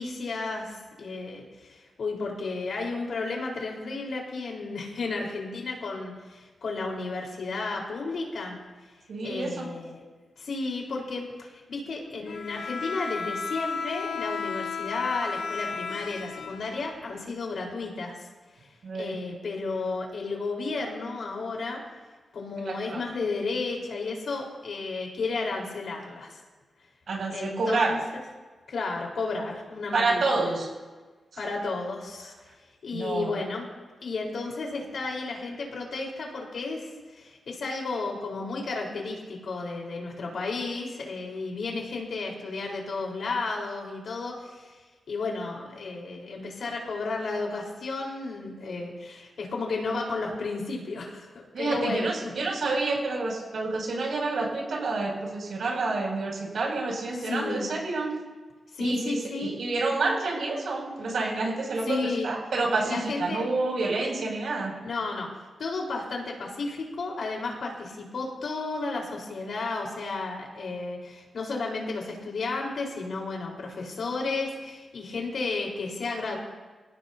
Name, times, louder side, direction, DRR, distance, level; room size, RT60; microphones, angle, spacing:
voice 1, 0.0-8.6 9.2-10.0 10.4-18.3 18.6-21.8 22.3-26.4 27.3-28.0 28.7-30.5 31.4-32.3 32.8-33.7 34.0-44.8 45.1-52.3 57.1-57.7 58.7-59.6 61.9-62.3 62.8-63.5 64.8-65.3 65.6-76.4, left 3 dB, 65° left, -1 dB, 4.2 m, -33 dB
voice 2, 9.1-9.6 18.8-19.2 22.6-23.0 27.1-27.9 29.9-30.7 31.3-31.4 32.9-33.3 51.5-58.1 58.8-62.0 62.2-64.7, right 3 dB, 65° right, -2 dB, 6.5 m, -28 dB
Bowed string instrument, 12.2-17.3, left 5 dB, 85° left, 1.3 m, -34 dB
27.5 x 16.5 x 2.8 m, 1.4 s
wide cardioid pair, 140°, 0 cm